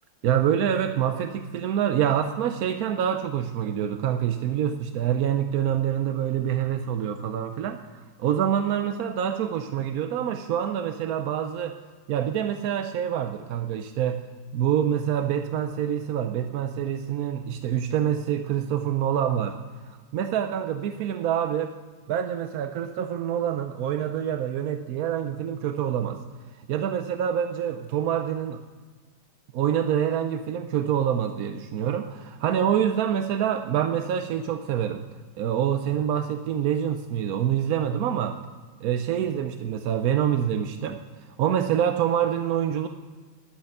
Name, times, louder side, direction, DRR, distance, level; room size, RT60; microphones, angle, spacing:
voice 1, 0.2-11.8 12.1-14.2 14.5-19.6 20.1-21.7 22.1-26.2 26.7-28.6 29.5-35.0 35.4-38.4 38.8-42.9, right 9 dB, 70° right, 8 dB, 0.9 m, -26 dB
11.5 x 8.7 x 6.6 m, 1.5 s
omnidirectional pair, 2.1 m